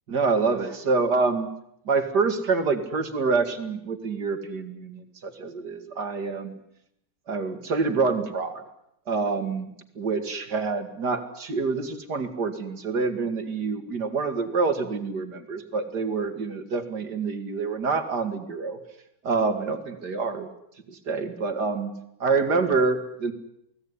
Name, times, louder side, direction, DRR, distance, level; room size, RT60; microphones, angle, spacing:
voice 1, 0.1-1.5 1.8-6.6 7.3-8.6 9.1-9.7 9.9-18.8 19.2-20.5 20.9-21.9 22.2-23.3, right 4 dB, 70° right, 8 dB, 2.9 m, -26 dB
29.0 x 19.0 x 9.8 m, 0.77 s
omnidirectional pair, 1.9 m